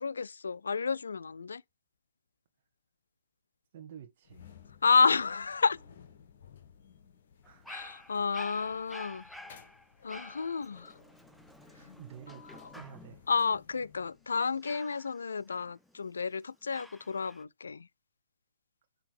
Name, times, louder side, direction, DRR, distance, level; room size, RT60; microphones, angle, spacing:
voice 1, 0.0-1.6 4.8-5.8 7.7-9.2 10.0-10.9 13.3-17.9, left 5 dB, 85° left, 0.3 m, -30 dB
voice 2, 3.7-4.6 7.4-7.7 11.7-13.3, right 9 dB, 50° right, 0.9 m, -50 dB
sound 1, 4.2-14.4, left 8 dB, 60° left, 1.0 m, -57 dB
Dog, 7.4-13.3 14.6-16.1 16.7-17.4, left 1 dB, ahead, 0.4 m, -50 dB
7.5 x 2.9 x 4.5 m
hypercardioid pair, 140°, 0 cm